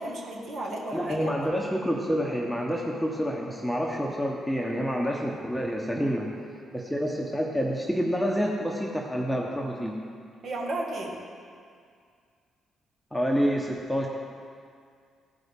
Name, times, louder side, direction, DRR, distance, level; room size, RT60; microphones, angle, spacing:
voice 1, 0.0-1.5 10.4-11.2, right 1 dB, 60° right, -3 dB, 1.8 m, -33 dB
voice 2, 0.9-6.3 6.7-10.0 13.1-14.1, equal, ahead, -1 dB, 1.0 m, -28 dB
14.5 x 5.4 x 3.6 m, 2.2 s
hypercardioid pair, 50°, 0 cm